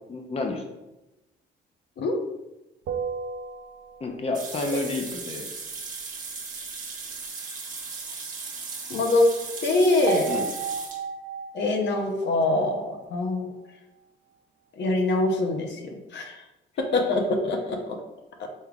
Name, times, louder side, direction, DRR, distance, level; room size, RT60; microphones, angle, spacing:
voice 1, 0.1-0.6 4.0-5.5 10.3-10.5, left 3 dB, 30° left, 3 dB, 0.6 m, -30 dB
sound 1, 2.9-4.4 10.1-13.4, right 6 dB, 60° right, 0.5 m, -34 dB
sound 2, 4.3-11.0, right 4 dB, 40° right, 1.1 m, -37 dB
voice 2, 8.9-9.3 9.6-10.3 11.5-13.5 14.8-16.4 16.9-17.8 18.4-18.5, left 2 dB, 65° left, 2 dB, 0.8 m, -24 dB
5.3 x 3.4 x 2.3 m, 0.98 s
cardioid pair, 90°, 20 cm